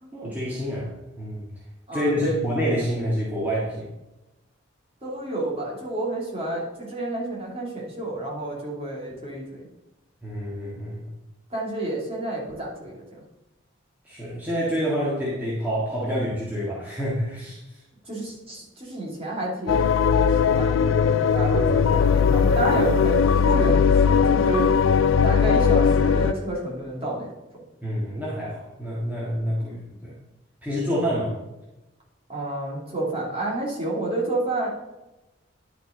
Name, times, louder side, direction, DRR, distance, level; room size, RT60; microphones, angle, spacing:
voice 1, 0.1-0.9 1.2-1.5 1.9-3.9 10.2-11.1 14.0-17.8 27.8-30.1 30.6-31.4, equal, 10° right, -8 dB, 1.8 m, -27 dB
voice 2, 1.9-2.4 5.0-9.7 11.5-13.0 18.0-24.7 25.2-27.3 32.3-34.7, right 1 dB, 30° right, -4 dB, 2.8 m, -29 dB
sound 1, 19.7-26.3, left 6 dB, 75° left, 0.4 m, -19 dB
10.5 x 6.0 x 3.9 m, 0.99 s
head